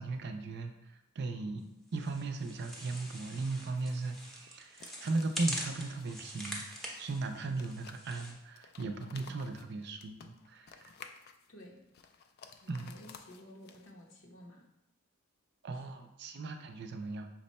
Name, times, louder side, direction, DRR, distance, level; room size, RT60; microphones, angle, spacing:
voice 1, 0.0-1.6 1.9-6.6 7.0-10.9 12.7-12.9 15.6-17.3, right 3 dB, 55° right, 6 dB, 0.4 m, -37 dB
sound 1, 1.9-8.3, equal, ahead, 0.7 m, -44 dB
sound 2, 3.6-14.1, left 6 dB, 50° left, 0.3 m, -56 dB
voice 2, 12.6-14.7 15.7-15.8, left 1 dB, 75° left, 0 dB, 0.9 m, -53 dB
5.8 x 2.2 x 4.1 m, 0.89 s
head